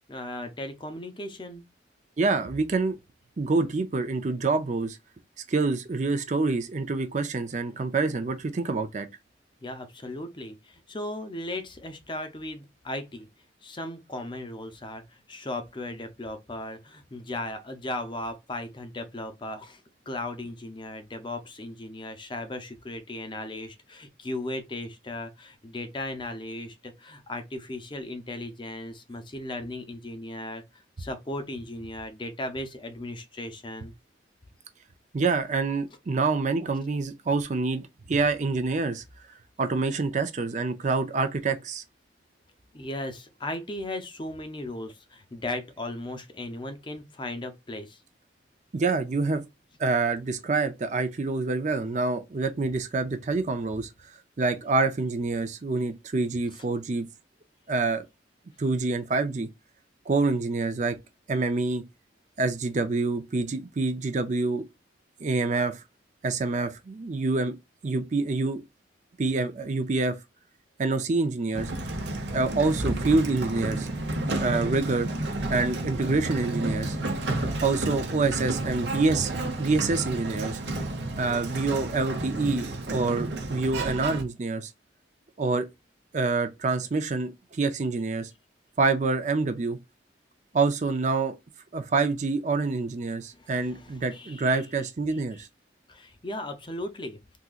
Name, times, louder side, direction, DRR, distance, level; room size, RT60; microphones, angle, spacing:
voice 1, 0.1-1.6 9.6-13.3 13.6-19.8 20.1-33.9 42.7-48.0 93.4-94.6 95.9-97.4, left 1 dB, 25° left, 0.6 m, -37 dB
voice 2, 2.2-3.0 3.4-5.0 5.5-9.1 35.1-39.0 39.6-41.8 48.7-49.4 49.8-53.9 54.4-57.1 57.7-58.0 58.6-59.5 60.1-61.0 61.3-61.8 62.4-64.7 65.2-65.8 66.2-67.5 67.8-68.6 69.2-70.2 70.8-71.7 72.3-73.9 74.4-75.1 75.5-77.0 77.6-79.3 79.6-80.6 81.2-84.7 85.4-85.7 86.1-88.3 88.8-89.8 90.5-91.4 91.7-95.5, right 3 dB, 40° right, 0.5 m, -26 dB
Sliding door, 71.5-84.2, right 2 dB, 65° right, 0.8 m, -31 dB
3.6 x 2.9 x 2.4 m
head